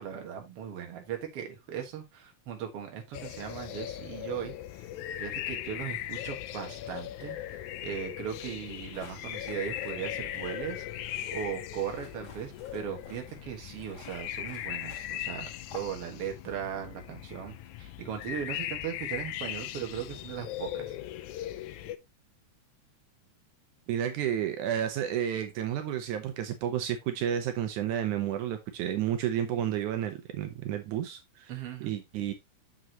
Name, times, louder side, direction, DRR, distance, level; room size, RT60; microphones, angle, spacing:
voice 1, 0.0-4.5 5.2-7.4 7.8-20.9 31.5-31.9, right 9 dB, 55° right, 3 dB, 2.3 m, -38 dB
sound 1, 3.1-22.0, left 12 dB, 85° left, 2.1 m, -39 dB
sound 2, 8.9-16.1, left 4 dB, 35° left, 2.5 m, -52 dB
voice 2, 23.9-31.5 31.8-32.3, right 10 dB, 80° right, 7 dB, 2.4 m, -31 dB
7.5 x 6.3 x 2.9 m, 0.20 s
omnidirectional pair, 3.5 m